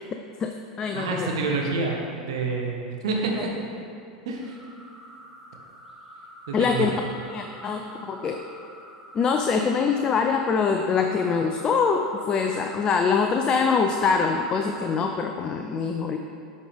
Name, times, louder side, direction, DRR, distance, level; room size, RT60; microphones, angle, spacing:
voice 1, 0.4-1.3 6.5-6.9 7.3-8.4 9.1-16.2, left 5 dB, 30° left, 4 dB, 0.4 m, -24 dB
voice 2, 0.9-3.5 4.2-4.6 6.5-6.9, right 3 dB, 65° right, 0 dB, 1.2 m, -28 dB
sound 1, 4.4-15.2, equal, 10° right, 1.2 m, -46 dB
9.9 x 5.3 x 3.4 m, 2.5 s
figure-of-eight pair, 85°, 3 cm